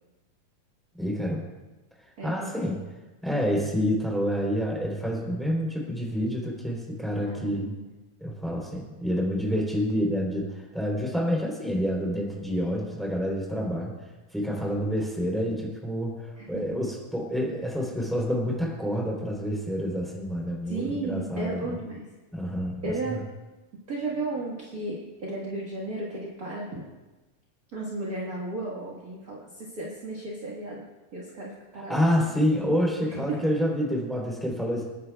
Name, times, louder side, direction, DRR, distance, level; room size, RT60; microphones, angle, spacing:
voice 1, 1.0-1.4 2.2-2.8 3.2-7.7 8.2-13.9 14.3-21.8 22.3-23.2 31.7-34.8, equal, ahead, -3 dB, 3.0 m, -28 dB
voice 2, 2.2-2.8 7.2-7.9 16.4-16.6 20.7-22.0 22.8-23.3 23.9-26.8 27.7-30.8 31.1-32.1 33.3-33.4, right 2 dB, 40° right, -4 dB, 1.3 m, -34 dB
27.0 x 9.7 x 2.3 m, 1.1 s
omnidirectional pair, 3.7 m